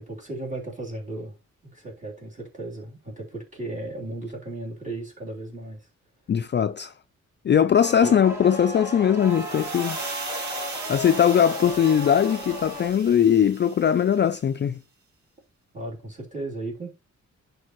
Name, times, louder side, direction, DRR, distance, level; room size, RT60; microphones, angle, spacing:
voice 1, 0.0-1.4 1.7-5.9 8.0-8.1 15.7-16.9, right 2 dB, 25° right, 3.4 m, -35 dB
voice 2, 6.3-6.9 7.4-10.1 10.9-14.8, left 8 dB, 40° left, 0.4 m, -20 dB
sound 1, 7.8-12.9, left 1 dB, 10° right, 3.4 m, -35 dB
sound 2, 9.2-14.3, right 4 dB, 75° right, 2.0 m, -38 dB
11.0 x 4.7 x 3.1 m
wide cardioid pair, 115°, 29 cm